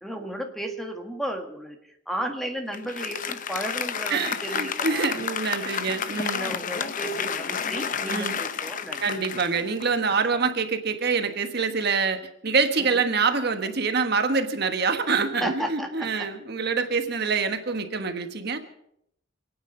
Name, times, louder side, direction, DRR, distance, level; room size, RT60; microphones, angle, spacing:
voice 1, 0.0-5.2 6.3-9.0 12.8-13.0 15.4-15.9 16.2-16.3, right 1 dB, ahead, 4 dB, 1.6 m, -33 dB
Applause, 2.7-10.3, left 7 dB, 45° left, 0.7 m, -31 dB
voice 2, 4.1-6.5 8.1-8.4 9.0-18.6, right 4 dB, 55° right, 7 dB, 1.3 m, -26 dB
27.0 x 9.5 x 5.4 m, 0.75 s
head